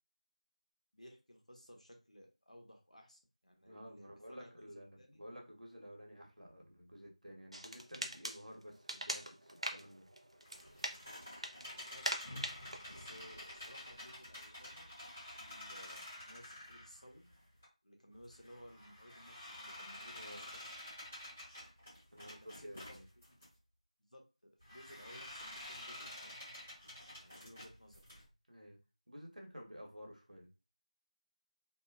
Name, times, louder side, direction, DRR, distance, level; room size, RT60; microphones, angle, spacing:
voice 1, 0.9-5.2 11.7-12.0 12.9-14.9 15.3-17.2 17.8-20.7 22.1-23.4 24.0-26.4 27.2-28.0, equal, 70° left, 1 dB, 0.9 m, -58 dB
voice 2, 3.6-10.1 20.1-20.5 22.1-23.0 28.5-28.8 29.1-30.5, equal, 80° right, 0 dB, 1.1 m, -52 dB
sound 1, 7.5-14.1, right 1 dB, 50° right, 0.4 m, -44 dB
sound 2, 10.4-17.6 18.1-23.5 24.6-28.2, left 1 dB, 15° left, 0.9 m, -50 dB
2.8 x 2.3 x 2.3 m, 0.30 s
figure-of-eight pair, 175°, 4 cm